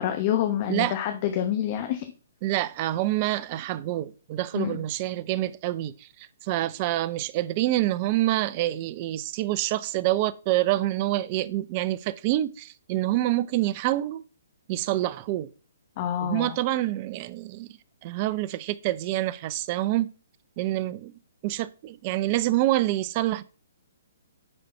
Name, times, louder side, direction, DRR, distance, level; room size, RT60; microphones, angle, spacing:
voice 1, 0.0-2.0 4.5-4.8 16.0-16.6, left 10 dB, 40° left, 0.9 m, -27 dB
voice 2, 2.4-14.2 14.7-15.5 16.2-17.7 18.0-20.1 20.6-21.1 21.4-23.4, right 15 dB, 35° right, 0.6 m, -27 dB
9.7 x 4.1 x 4.3 m
figure-of-eight pair, 130°, 0 cm